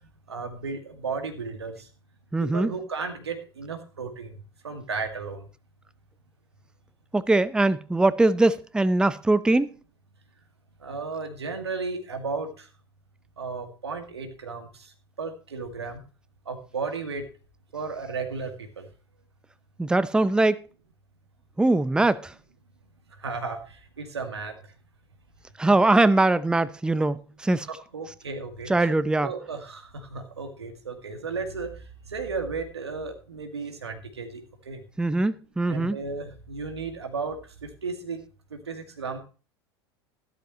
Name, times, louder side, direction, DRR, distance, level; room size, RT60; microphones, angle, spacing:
voice 1, 0.3-1.9 2.4-4.3 4.6-5.4 10.8-12.7 13.4-14.7 15.2-16.0 16.5-17.3 17.7-18.9 23.2-24.6 27.7-28.9 29.2-31.7 32.1-34.8 35.7-38.2 38.5-39.2, right 4 dB, 80° right, 2.1 m, -34 dB
voice 2, 2.3-2.7 7.1-9.7 19.8-20.6 21.6-22.3 25.6-27.7 28.7-29.3 35.0-36.0, right 2 dB, 5° right, 0.7 m, -22 dB
13.5 x 12.5 x 3.1 m
figure-of-eight pair, 80°, 14 cm